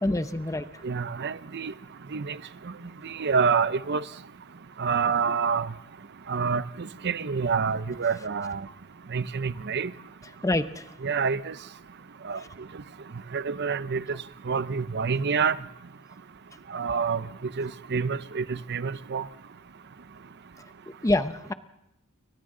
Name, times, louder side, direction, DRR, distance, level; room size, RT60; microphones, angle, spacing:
voice 1, 0.0-0.7 10.4-10.9 21.0-21.5, left 1 dB, 15° left, 0.8 m, -26 dB
voice 2, 0.8-1.7 2.1-2.4 3.2-4.0 4.8-5.7 6.3-8.6 9.1-9.9 11.0-11.5 12.3-12.4 13.3-14.0 14.5-15.6 16.7-17.2 17.6-19.3, right 5 dB, 50° right, 0.7 m, -27 dB
29.0 x 23.5 x 3.8 m
head